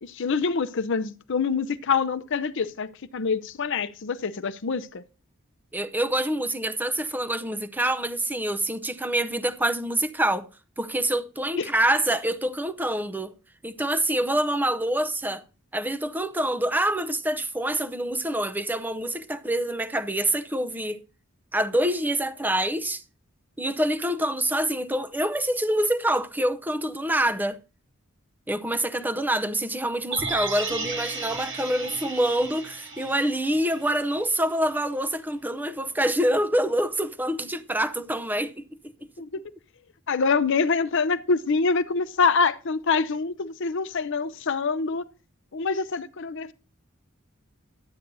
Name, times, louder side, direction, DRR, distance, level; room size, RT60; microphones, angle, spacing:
voice 1, 0.0-5.0 11.6-11.7 39.2-39.4 40.1-45.0 45.5-46.5, left 4 dB, 60° left, 0.7 m, -25 dB
voice 2, 5.7-10.5 10.8-13.3 13.6-15.4 15.7-21.0 21.5-23.0 23.6-27.6 28.5-38.6, right 1 dB, 10° right, 0.6 m, -26 dB
sound 1, 30.1-34.3 34.6-34.7, right 3 dB, 60° right, 1.5 m, -35 dB
12.0 x 9.4 x 2.6 m
head